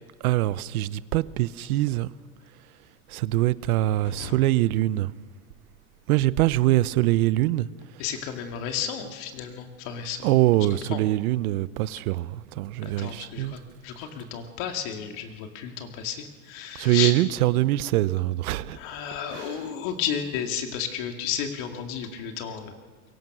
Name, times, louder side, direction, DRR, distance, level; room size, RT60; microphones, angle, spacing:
voice 1, 0.2-2.1 3.1-5.1 6.1-7.7 10.2-13.6 16.8-18.8 19.3-19.4, right 15 dB, 75° right, 0.9 m, -23 dB
voice 2, 4.0-4.3 8.0-10.3 10.7-11.0 12.8-17.1 18.7-22.8, left 8 dB, 45° left, 2.4 m, -33 dB
24.0 x 23.0 x 6.2 m
supercardioid pair, 175°, 44 cm